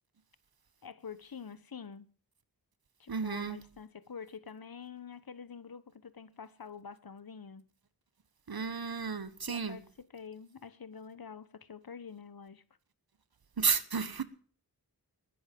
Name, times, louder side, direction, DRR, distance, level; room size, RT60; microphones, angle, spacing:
voice 1, 0.8-2.1 3.0-7.7 9.5-12.6, left 6 dB, 65° left, 1.1 m, -47 dB
voice 2, 3.1-3.6 8.5-9.8 13.6-14.2, right 5 dB, 70° right, 1.3 m, -32 dB
20.0 x 10.5 x 5.3 m
wide cardioid pair, 45°, 38 cm